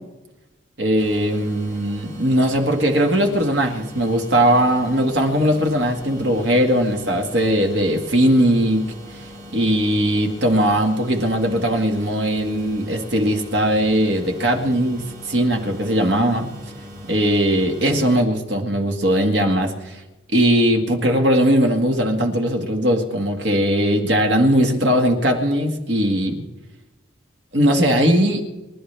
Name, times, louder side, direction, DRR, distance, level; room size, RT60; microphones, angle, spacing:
voice 1, 0.8-8.8 9.5-16.5 17.1-20.0 20.3-26.4 27.5-28.4, equal, 65° right, 3 dB, 1.9 m, -19 dB
sound 1, 1.0-18.2, equal, 40° right, 2.7 m, -40 dB
29.0 x 12.5 x 3.4 m, 1.1 s
head